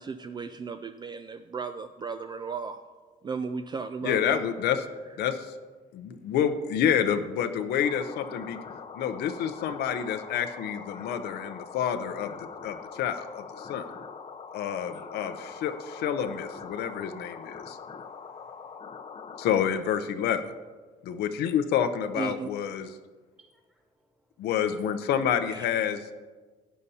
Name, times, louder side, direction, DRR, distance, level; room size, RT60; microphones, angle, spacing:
voice 1, 0.0-2.8 3.2-4.4 22.2-22.5 25.5-25.6, right 5 dB, 25° right, 9 dB, 0.3 m, -35 dB
voice 2, 4.0-4.9 5.2-5.5 5.9-8.6 8.9-13.9 14.5-17.8 19.4-20.4 21.0-23.0 24.4-26.2, left 8 dB, 75° left, 9 dB, 0.6 m, -28 dB
sound 1, 7.8-19.6, left 6 dB, 35° left, 0.6 m, -43 dB
voice 3, 18.6-19.5 21.0-21.2 23.3-24.2, right 2 dB, 5° right, 1 dB, 1.7 m, -66 dB
12.0 x 9.5 x 2.8 m, 1.4 s
cardioid pair, 110°, 17 cm